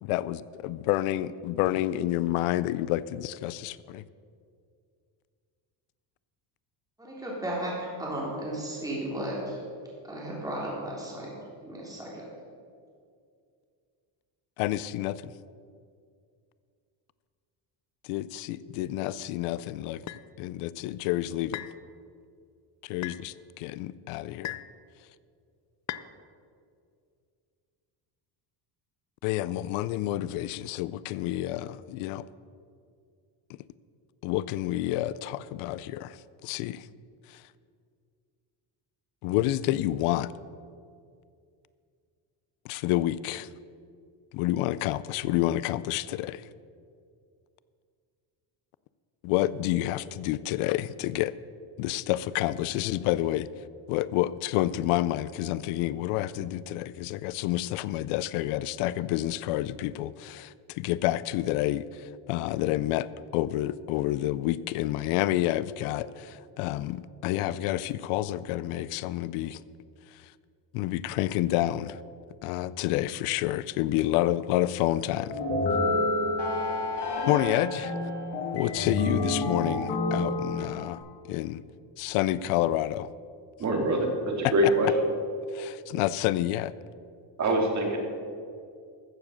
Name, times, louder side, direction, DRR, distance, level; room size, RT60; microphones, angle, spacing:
voice 1, 0.0-4.0 14.6-15.2 18.0-20.0 20.4-21.7 22.8-24.6 29.2-32.2 34.2-36.9 37.3-37.4 39.2-40.3 42.6-43.5 44.3-46.5 49.2-51.3 51.8-53.5 53.9-63.1 63.3-69.6 70.1-70.3 70.7-72.0 72.4-75.4 77.3-77.9 78.5-81.6 82.0-83.1 84.4-84.7 85.5-86.7, left 14 dB, 85° left, 17 dB, 0.6 m, -29 dB
voice 2, 7.0-9.6 10.1-11.3 11.6-12.2, right 1 dB, 5° right, -5 dB, 3.5 m, -34 dB
sound 1, 20.1-20.2 21.5-21.8 23.0-23.2 24.4-24.7 25.9-26.1, left 12 dB, 35° left, 0.4 m, -36 dB
sound 2, 75.3-81.0, left 2 dB, 55° left, 2.7 m, -29 dB
voice 3, 83.6-84.9 87.4-88.0, right 1 dB, 35° right, 2 dB, 2.4 m, -24 dB
14.5 x 7.2 x 6.4 m, 2.3 s
cardioid pair, 130°, 49 cm